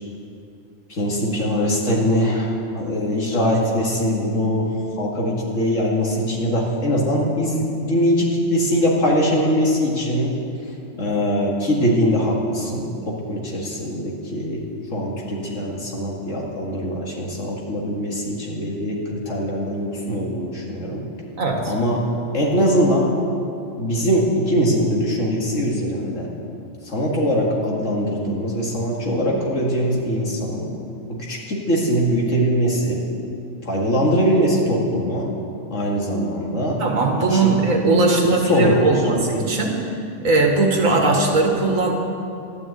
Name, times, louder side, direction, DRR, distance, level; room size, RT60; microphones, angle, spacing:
voice 1, 0.9-10.3 11.0-14.6 14.9-21.0 21.6-22.1 22.3-23.1 23.8-26.3 26.8-30.7 31.1-33.0 33.6-35.3 35.7-36.8 37.3-37.6 38.2-38.9, equal, 70° left, -3 dB, 2.3 m, -22 dB
voice 2, 21.4-21.7 36.8-39.7 40.2-41.9, right 3 dB, 90° right, 1 dB, 2.2 m, -19 dB
12.5 x 11.0 x 8.3 m, 2.6 s
omnidirectional pair, 1.4 m